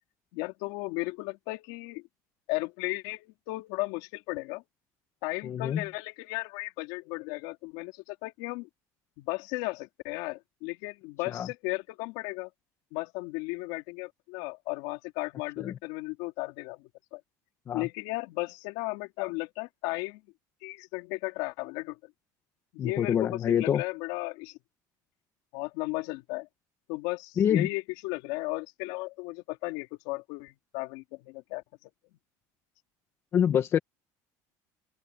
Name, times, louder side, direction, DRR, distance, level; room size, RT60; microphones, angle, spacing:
voice 1, 0.3-2.0 2.5-4.6 5.2-8.7 9.2-12.5 12.9-17.2 17.7-20.2 20.6-22.0 22.7-24.6 25.5-26.5 26.9-31.9, left 23 dB, 80° left, 3.6 m, -35 dB
voice 2, 5.4-5.8 11.3-11.5 15.6-15.8 17.7-17.9 22.8-23.8 27.4-27.7 33.3-33.8, left 9 dB, 35° left, 1.6 m, -26 dB
cardioid pair, 150°, 8 cm